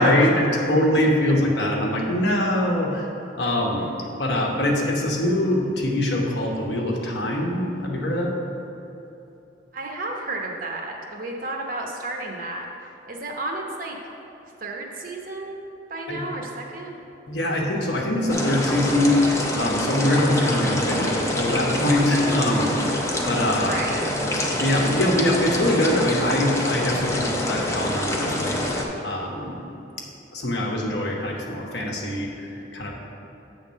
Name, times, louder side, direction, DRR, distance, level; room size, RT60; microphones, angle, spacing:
voice 1, 0.0-3.1 3.4-3.9 4.2-8.3 16.1-16.2 17.3-23.8 24.5-28.6 29.0-29.6 30.3-32.9, left 1 dB, 60° left, -1 dB, 1.1 m, -23 dB
voice 2, 9.7-12.7 13.1-14.0 14.6-15.6 15.9-16.9 20.7-21.1 23.5-24.1, right 2 dB, 50° right, 0 dB, 0.9 m, -32 dB
sound 1, 18.3-28.8, left 1 dB, 15° left, 0.6 m, -26 dB
8.3 x 3.7 x 6.3 m, 3.0 s
head